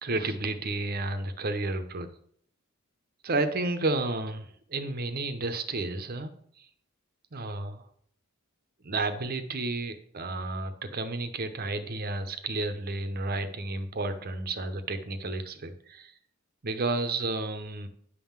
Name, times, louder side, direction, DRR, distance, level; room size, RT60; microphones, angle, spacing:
voice 1, 0.0-2.1 3.2-6.3 6.6-6.7 7.3-7.8 8.8-16.1 16.6-17.9, right 2 dB, 40° right, 9 dB, 0.8 m, -31 dB
10.0 x 3.7 x 7.2 m, 0.63 s
head